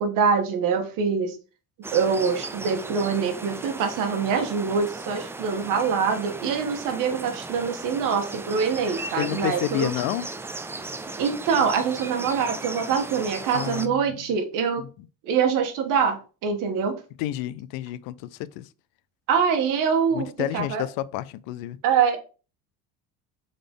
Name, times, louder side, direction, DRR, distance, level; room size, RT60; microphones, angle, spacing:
voice 1, 0.0-1.4 1.9-9.9 11.2-14.8 15.2-17.0 19.3-20.8 21.8-22.2, right 6 dB, 65° right, 1.5 m, -24 dB
Inca Trail Cloud Forest, 1.8-13.9, right 2 dB, 10° right, 0.3 m, -36 dB
voice 2, 9.2-10.3 13.5-14.4 14.8-15.1 17.2-18.7 20.1-21.8, left 14 dB, 85° left, 0.6 m, -30 dB
6.8 x 4.0 x 3.7 m
cardioid pair, 140°, 34 cm